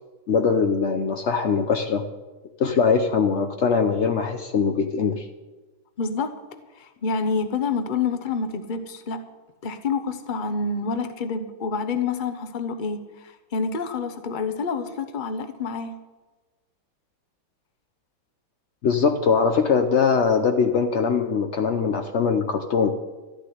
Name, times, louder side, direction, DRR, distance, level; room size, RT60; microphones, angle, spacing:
voice 1, 0.3-2.0 2.6-5.3 18.8-22.9, left 5 dB, 85° left, 6 dB, 0.6 m, -21 dB
voice 2, 6.0-6.4 6.7-9.2 9.6-16.0, left 4 dB, 45° left, 9 dB, 0.6 m, -28 dB
13.0 x 6.9 x 9.9 m, 1.2 s
omnidirectional pair, 2.2 m